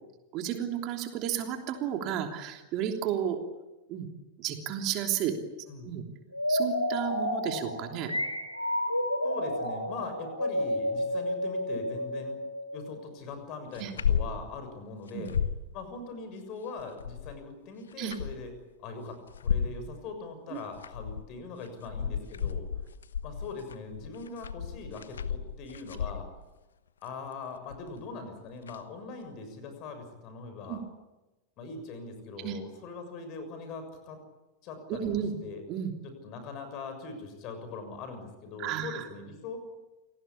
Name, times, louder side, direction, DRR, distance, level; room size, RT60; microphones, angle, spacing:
voice 1, 0.3-3.4 3.9-4.1 4.4-5.3 5.8-6.0 6.5-8.1 13.8-13.9 15.1-15.2 18.0-18.1 20.5-20.6 30.7-30.8 32.4-32.6 34.9-35.3 35.7-35.9 38.6-39.1, right 10 dB, 40° right, 4 dB, 3.1 m, -32 dB
sound 1, 6.3-13.0, left 1 dB, 85° left, 3.4 m, -31 dB
voice 2, 9.2-12.4 12.7-15.3 15.7-18.5 18.8-22.7 23.2-26.3 27.0-30.8 31.6-34.2 34.6-35.6 36.2-39.6, left 4 dB, 40° left, 8 dB, 6.7 m, -41 dB
sound 2, 13.8-14.4 14.7-14.8 15.1-15.6 16.8-17.4 17.9-18.6 19.3-19.8 20.6-21.3 21.7-26.4 27.7-28.0 28.7-28.8, left 7 dB, 70° left, 1.0 m, -33 dB
28.5 x 18.5 x 8.7 m, 1.0 s
figure-of-eight pair, 90°, 0 cm